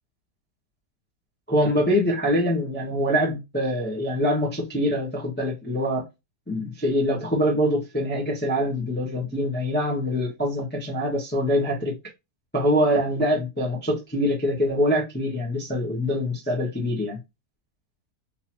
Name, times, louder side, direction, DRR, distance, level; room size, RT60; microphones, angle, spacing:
voice 1, 1.5-6.1 6.5-11.9 12.5-17.2, equal, 10° left, 0.8 m, -24 dB
3.9 x 2.8 x 2.8 m
omnidirectional pair, 1.8 m